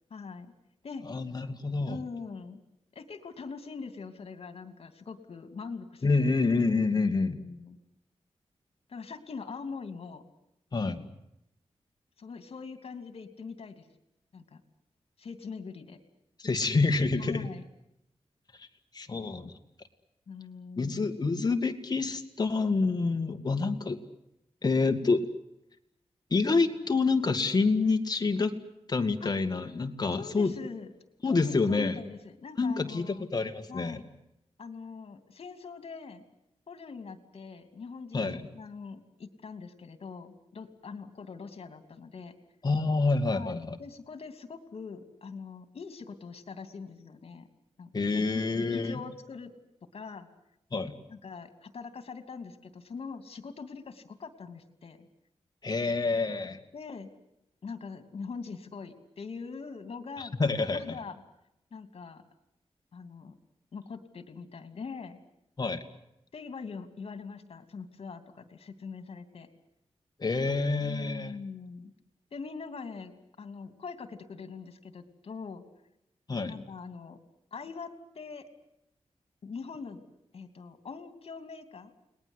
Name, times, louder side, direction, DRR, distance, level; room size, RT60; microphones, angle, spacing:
voice 1, 0.1-0.5 0.8-1.1 1.9-2.6 2.9-6.3 6.9-7.8 8.9-10.2 12.2-13.9 14.3-14.6 15.2-16.0 17.2-17.6 20.3-21.2 29.2-29.3 30.1-30.9 31.3-33.3 33.7-34.0 34.6-36.2 36.7-42.3 43.3-47.5 47.8-48.4 48.7-49.5 49.9-50.3 51.1-55.1 56.0-56.1 56.7-57.1 57.6-60.3 60.7-61.2 61.7-62.2 62.9-63.4 63.7-65.2 66.3-69.5 70.5-71.9 72.3-75.6 76.5-77.2 77.5-78.5 79.4-80.0 80.3-81.9, left 5 dB, 65° left, 9 dB, 2.8 m, -42 dB
voice 2, 1.0-2.0 6.0-7.4 10.7-11.1 16.4-17.5 18.6-18.7 18.9-19.5 20.8-24.0 24.6-25.2 26.3-28.5 28.9-30.5 31.2-32.0 32.6-34.0 38.1-38.5 42.6-43.8 47.9-48.9 50.7-51.0 55.6-56.6 60.2-61.0 65.6-65.8 70.2-71.4 76.3-76.6, left 3 dB, 40° left, 6 dB, 2.2 m, -27 dB
30.0 x 20.5 x 8.1 m, 0.83 s
wide cardioid pair, 125°, 11 cm